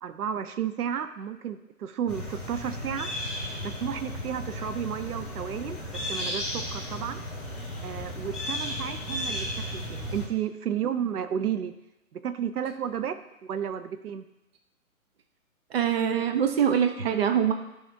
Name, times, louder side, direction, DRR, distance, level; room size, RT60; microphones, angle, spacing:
voice 1, 0.0-3.1 3.6-7.2 7.8-9.5 9.7-11.7 12.1-14.2, right 8 dB, 90° right, 10 dB, 0.7 m, -32 dB
sound 1, 2.1-10.3, left 1 dB, ahead, 1.9 m, -34 dB
voice 2, 15.7-17.5, right 8 dB, 45° right, 6 dB, 0.7 m, -24 dB
12.0 x 4.9 x 2.7 m, 0.94 s
hypercardioid pair, 155°, 44 cm